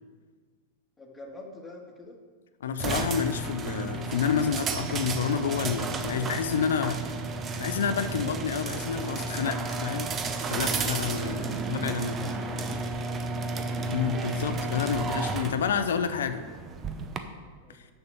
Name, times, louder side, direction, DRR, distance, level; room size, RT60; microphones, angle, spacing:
voice 1, 1.0-2.2 11.1-13.1 17.6-17.9, left 2 dB, 10° left, 0 dB, 1.8 m, -47 dB
voice 2, 2.6-7.0 7.6-10.1 10.5-12.3 13.9-16.4, left 7 dB, 70° left, 10 dB, 0.6 m, -29 dB
sound 1, 2.8-17.2, right 3 dB, 25° right, 0.8 m, -32 dB
6.7 x 6.7 x 7.1 m, 1.5 s
figure-of-eight pair, 95°, 0 cm